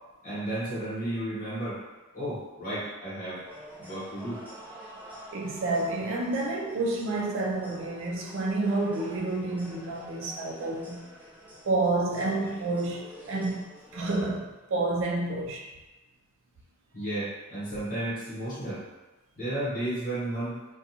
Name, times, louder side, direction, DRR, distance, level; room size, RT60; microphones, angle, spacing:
voice 1, 0.2-1.8 2.1-3.4 3.8-4.4 16.9-18.9 19.4-20.7, right 1 dB, 40° left, 0.9 m, -33 dB
sound 1, 3.4-14.2, equal, 10° right, 0.6 m, -48 dB
voice 2, 5.3-11.0 11.7-13.7 13.9-15.7, right 2 dB, 65° right, 0.4 m, -29 dB
2.5 x 2.2 x 2.8 m
head